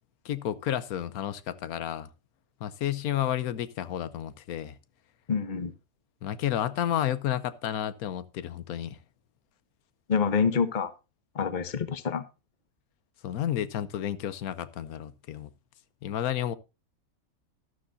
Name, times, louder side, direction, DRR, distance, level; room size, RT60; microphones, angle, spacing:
voice 1, 0.2-2.1 2.6-4.7 6.2-9.0 13.2-15.5 16.0-16.6, left 11 dB, 90° left, 1.2 m, -31 dB
voice 2, 5.3-5.7 10.1-10.9 11.3-12.2, left 6 dB, 35° left, 1.0 m, -27 dB
12.5 x 12.5 x 2.6 m
omnidirectional pair, 1.5 m